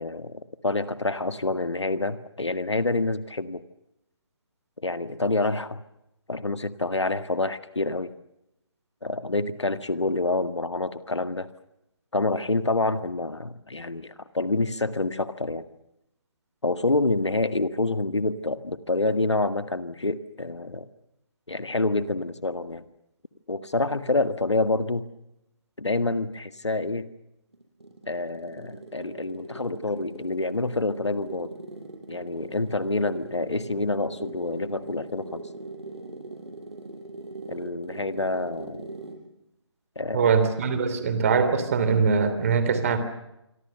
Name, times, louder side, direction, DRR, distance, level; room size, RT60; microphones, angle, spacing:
voice 1, 0.0-3.6 4.8-5.8 6.3-8.1 9.0-11.5 12.1-15.7 16.6-20.9 21.5-22.8 23.5-25.1 25.8-27.1 28.1-31.6 32.1-35.4 37.5-38.9 40.0-40.4, left 2 dB, 70° left, 12 dB, 1.8 m, -27 dB
sound 1, 27.5-39.3, right 2 dB, 65° right, 7.3 m, -41 dB
voice 2, 40.1-43.0, right 5 dB, 30° right, 11 dB, 3.2 m, -22 dB
27.0 x 24.5 x 6.7 m, 0.86 s
figure-of-eight pair, 150°, 15 cm